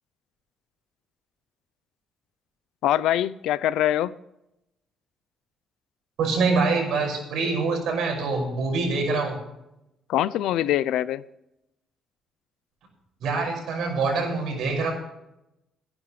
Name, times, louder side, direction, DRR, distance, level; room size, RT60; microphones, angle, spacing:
voice 1, 2.8-4.1 10.1-11.2, left 12 dB, 90° left, 0.5 m, -23 dB
voice 2, 6.2-9.4 13.2-14.9, right 4 dB, 70° right, 5.8 m, -25 dB
24.0 x 11.0 x 3.3 m
cardioid pair, 145°, 0 cm